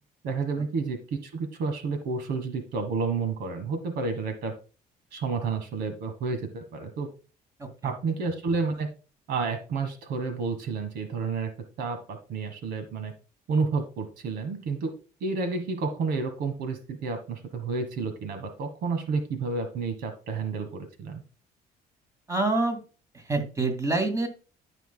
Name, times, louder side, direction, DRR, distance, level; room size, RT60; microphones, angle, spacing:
voice 1, 0.2-4.5 5.1-7.1 7.8-8.9 9.3-11.5 11.8-13.1 13.5-14.9 15.2-21.2, right 4 dB, 75° right, 9 dB, 1.4 m, -30 dB
voice 2, 7.6-7.9 22.3-22.8 23.1-24.3, right 2 dB, 20° right, 6 dB, 2.1 m, -27 dB
13.0 x 5.8 x 2.2 m, 0.35 s
cardioid pair, 110°, 17 cm